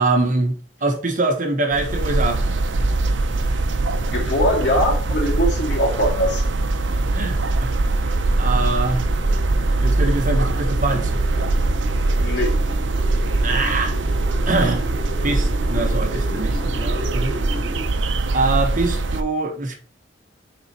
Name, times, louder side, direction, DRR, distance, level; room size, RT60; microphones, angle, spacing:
voice 1, 0.0-2.4 7.1-7.7 8.4-9.1 9.8-11.5 13.4-14.0 14.5-14.8 15.2-17.3 18.3-19.7, right 2 dB, 45° right, 1.3 m, -23 dB
sound 1, 1.7-19.2, right 2 dB, 80° right, 0.7 m, -22 dB
sound 2, 3.9-17.8, equal, 25° left, 3.7 m, -37 dB
voice 2, 4.1-6.4 12.2-12.5, equal, 65° left, 2.5 m, -21 dB
6.5 x 4.3 x 4.3 m
head